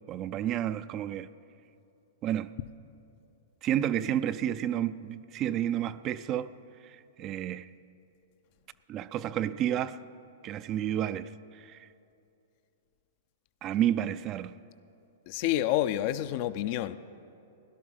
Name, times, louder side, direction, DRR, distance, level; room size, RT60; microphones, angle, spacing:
voice 1, 0.1-1.3 2.2-2.5 3.6-6.5 6.8-7.7 8.9-10.0 10.4-11.9 13.6-14.5, right 11 dB, 35° right, 0.4 m, -31 dB
voice 2, 15.3-17.0, left 13 dB, 50° left, 0.5 m, -28 dB
17.0 x 11.0 x 5.5 m
hypercardioid pair, 125°, 0 cm